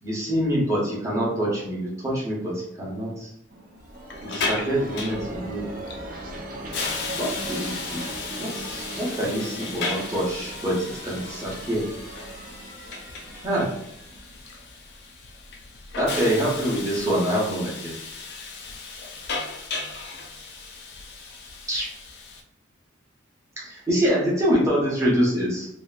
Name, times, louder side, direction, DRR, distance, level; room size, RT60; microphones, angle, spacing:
voice 1, 0.0-3.3 4.2-5.7 7.2-8.1 8.4-11.8 13.4-13.7 16.0-18.0 21.7-21.9 23.6-25.7, equal, 15° right, -6 dB, 0.8 m, -25 dB
sound 1, 3.5-15.0, right 1 dB, 45° right, 0.5 m, -39 dB
Hiss, 3.8-22.4, left 3 dB, 55° left, 0.4 m, -35 dB
2.7 x 2.5 x 2.3 m, 0.75 s
head